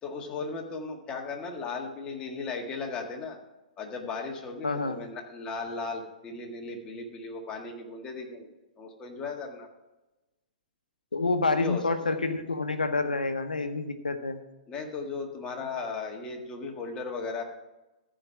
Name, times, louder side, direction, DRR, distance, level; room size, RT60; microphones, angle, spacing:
voice 1, 0.0-3.4 3.8-8.5 8.8-9.7 11.5-12.0 14.7-17.4, left 4 dB, 20° left, 1 dB, 1.8 m, -36 dB
voice 2, 4.6-5.0 11.1-14.4, left 3 dB, 85° left, 8 dB, 1.0 m, -28 dB
14.0 x 5.1 x 5.8 m, 1.0 s
figure-of-eight pair, 115°, 4 cm